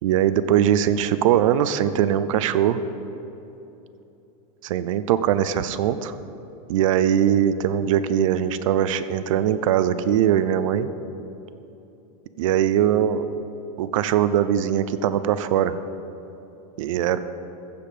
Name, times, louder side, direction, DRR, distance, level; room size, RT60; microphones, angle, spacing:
voice 1, 0.0-2.8 4.6-6.2 6.7-10.9 12.4-13.3 13.8-15.7 16.8-17.2, right 10 dB, 55° right, 13 dB, 0.5 m, -21 dB
15.0 x 5.1 x 7.7 m, 3.0 s
supercardioid pair, 175°, 20 cm